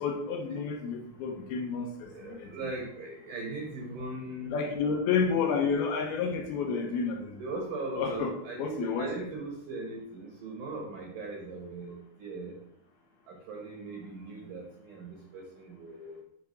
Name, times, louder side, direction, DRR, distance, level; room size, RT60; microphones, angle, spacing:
voice 1, 0.0-2.5 4.5-7.4 8.0-8.3 8.6-9.1, left 5 dB, 80° left, 2 dB, 2.5 m, -30 dB
voice 2, 2.1-4.5 7.4-12.6 13.3-16.2, right 2 dB, 65° right, -1 dB, 2.2 m, -39 dB
6.8 x 3.5 x 5.1 m, 0.71 s
omnidirectional pair, 4.8 m